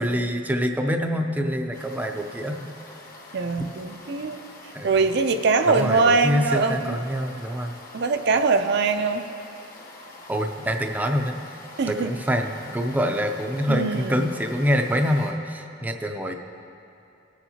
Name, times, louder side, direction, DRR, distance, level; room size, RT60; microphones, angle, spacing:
voice 1, 0.0-2.7 4.7-5.0 5.6-7.7 10.3-11.4 11.9-16.3, equal, 10° right, 4 dB, 0.5 m, -25 dB
sound 1, 1.7-15.3, left 2 dB, 50° left, 1.2 m, -45 dB
voice 2, 3.3-4.4 4.8-7.0 7.9-9.2 11.8-12.1 13.7-14.3, right 4 dB, 60° right, 7 dB, 0.5 m, -22 dB
19.5 x 7.2 x 2.8 m, 2.7 s
head